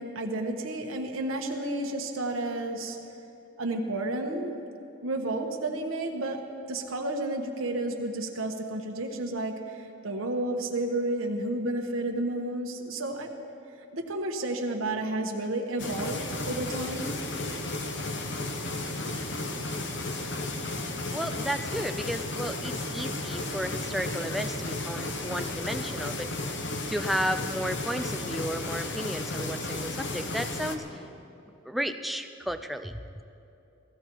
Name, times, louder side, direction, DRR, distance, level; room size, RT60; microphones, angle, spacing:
voice 1, 0.0-3.0 3.6-4.5 5.0-6.4 6.7-13.3 13.9-17.1, right 2 dB, 80° right, 2 dB, 1.1 m, -31 dB
sound 1, 15.8-30.8, left 2 dB, 60° left, 1.1 m, -33 dB
voice 2, 21.1-26.3 26.9-31.0 31.7-33.0, equal, ahead, 7 dB, 0.4 m, -33 dB
16.5 x 14.5 x 4.6 m, 2.8 s
head